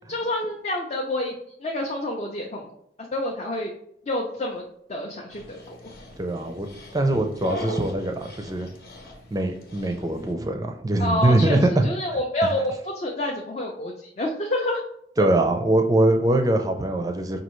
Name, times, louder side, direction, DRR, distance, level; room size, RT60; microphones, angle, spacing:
voice 1, 0.1-1.3 1.6-2.7 3.1-3.7 4.1-4.6 4.9-5.9 11.0-14.8 15.2-15.3, left 1 dB, 35° left, -1 dB, 0.5 m, -28 dB
Dog, 5.3-10.3, equal, 60° left, 0.9 m, -40 dB
voice 2, 6.2-6.7 6.9-8.7 9.3-11.9 15.2-17.4, right 1 dB, 20° right, 5 dB, 0.4 m, -22 dB
5.3 x 2.7 x 3.0 m, 0.72 s
head